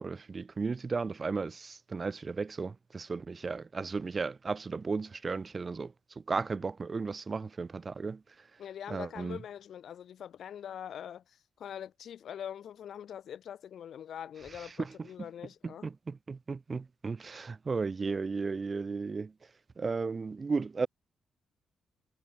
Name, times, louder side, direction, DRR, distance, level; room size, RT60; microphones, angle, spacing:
voice 1, 0.0-8.2 8.9-9.4 14.8-14.9 15.6-19.3 19.8-20.9, right 4 dB, 35° right, 7.2 m, -35 dB
voice 2, 8.6-15.9, left 9 dB, 70° left, 4.1 m, -43 dB
cardioid pair, 100°, 0 cm